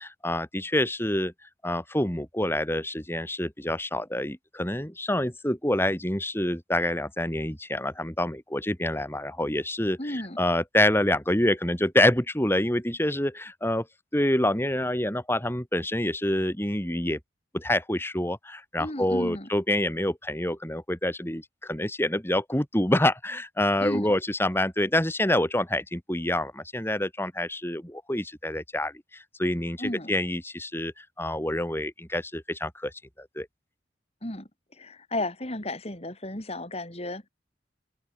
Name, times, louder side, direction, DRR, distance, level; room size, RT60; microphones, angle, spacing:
voice 1, 0.0-1.3 1.6-13.9 14.1-17.2 17.5-32.9 33.2-33.5, left 1 dB, 15° left, 4.2 m, -27 dB
voice 2, 10.0-10.4 18.8-19.5 23.8-24.1 29.8-30.1 34.2-34.5 34.8-37.3, left 1 dB, 35° left, 5.5 m, -33 dB
open air
head